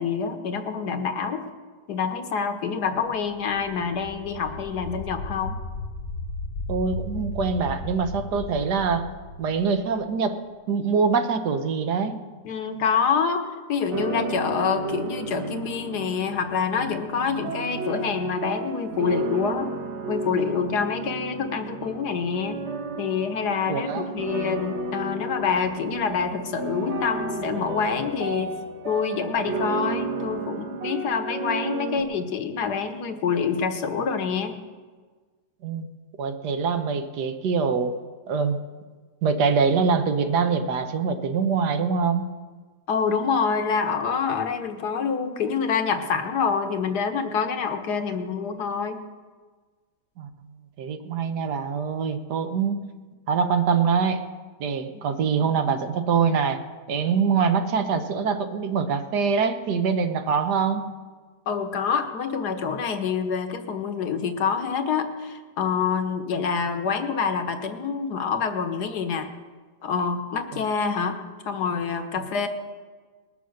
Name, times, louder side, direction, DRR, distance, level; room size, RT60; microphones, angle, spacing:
voice 1, 0.0-1.4 1.9-5.6 12.4-13.4 13.7-19.7 20.1-22.6 23.0-28.5 28.8-34.6 42.9-49.0 54.9-55.0 61.5-69.3 69.8-72.5, left 6 dB, 70° left, 7 dB, 1.6 m, -26 dB
sound 1, 3.3-10.2, left 2 dB, 55° left, 1.3 m, -35 dB
voice 2, 6.7-9.1 9.4-10.4 10.7-12.2 23.7-24.1 35.6-35.9 36.2-38.0 38.3-38.6 39.2-42.3 50.2-50.3 50.8-52.8 53.3-54.2 54.6-56.6 56.9-60.9, right 5 dB, 70° right, 9 dB, 1.5 m, -24 dB
sound 2, 13.9-32.0, right 2 dB, 45° right, 1.3 m, -32 dB
20.5 x 6.9 x 6.5 m, 1.4 s
omnidirectional pair, 1.8 m